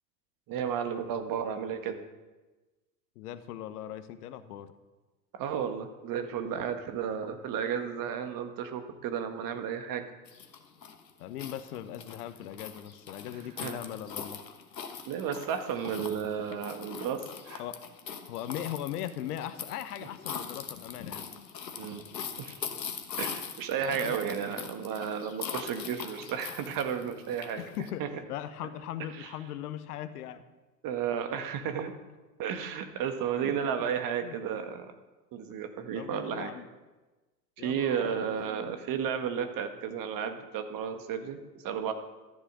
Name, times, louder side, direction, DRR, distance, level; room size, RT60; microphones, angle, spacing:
voice 1, 0.5-2.0 5.3-10.1 13.6-13.8 15.0-17.6 21.8-22.1 22.4-22.6 23.2-27.6 28.0-28.1 29.2-29.3 30.8-31.9 32.4-34.9 35.3-36.5 37.6-41.9, right 8 dB, 45° right, 7 dB, 1.6 m, -33 dB
voice 2, 3.2-4.7 11.2-14.4 17.6-17.8 18.3-21.2 23.8-24.2 27.6-30.4 33.4-33.6 34.2-34.4 35.9-36.6 37.6-38.3, left 11 dB, 65° left, 12 dB, 1.1 m, -39 dB
sound 1, 10.3-27.9, left 7 dB, 90° left, 1.2 m, -42 dB
13.5 x 7.8 x 6.3 m, 1.2 s
hypercardioid pair, 85°, 49 cm